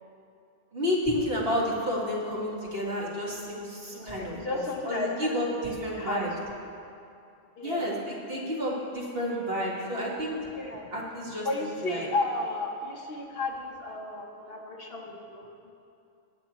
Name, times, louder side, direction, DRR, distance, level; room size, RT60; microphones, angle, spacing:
voice 1, 0.7-6.3 7.6-10.4 10.9-12.1, equal, 50° right, -4 dB, 2.1 m, -31 dB
voice 2, 3.9-6.2 6.6-6.8 7.6-7.9 10.6-10.9 11.4-15.7, left 2 dB, 55° left, 1 dB, 1.2 m, -34 dB
19.5 x 8.6 x 3.0 m, 2.6 s
omnidirectional pair, 1.2 m